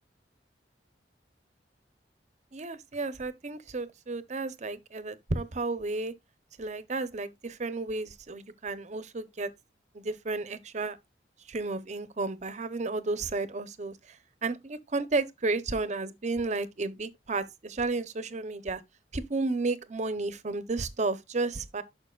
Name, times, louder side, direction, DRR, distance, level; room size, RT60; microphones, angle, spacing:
voice 1, 2.5-6.1 6.6-9.5 9.9-11.0 11.5-14.2 14.4-18.8 19.1-21.8, right 3 dB, 40° right, 0.8 m, -32 dB
11.0 x 5.7 x 2.4 m
head